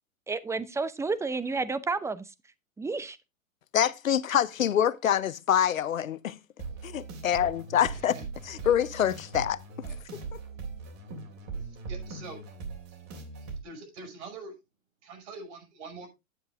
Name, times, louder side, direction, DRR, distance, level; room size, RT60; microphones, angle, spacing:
voice 1, 0.3-2.2 2.8-3.2, right 4 dB, 5° right, 0.6 m, -31 dB
voice 2, 3.7-6.4 6.8-8.1 8.4-9.9 10.3-10.4, left 10 dB, 80° left, 0.8 m, -26 dB
sound 1, 6.6-13.6, right 4 dB, 40° right, 3.3 m, -40 dB
voice 3, 11.7-12.4 13.6-14.5 15.0-16.1, right 3 dB, 60° right, 6.2 m, -44 dB
9.4 x 8.2 x 3.6 m
hypercardioid pair, 100°, 39 cm